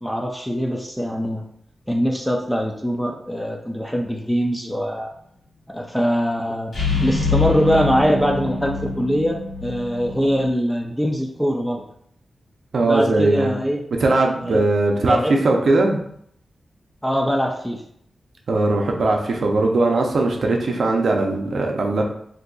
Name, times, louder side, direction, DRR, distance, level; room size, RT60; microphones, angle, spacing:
voice 1, 0.0-1.4 1.9-5.1 5.7-6.7 7.0-11.8 12.9-13.8 14.4-14.6 15.1-15.3 17.0-17.8, equal, ahead, 1 dB, 0.3 m, -22 dB
sound 1, 6.7-10.5, left 4 dB, 60° left, 1.5 m, -25 dB
voice 2, 12.7-13.5 14.0-16.0 18.5-22.0, right 2 dB, 60° right, 1 dB, 0.5 m, -19 dB
2.6 x 2.3 x 3.8 m, 0.68 s
wide cardioid pair, 175°, 0 cm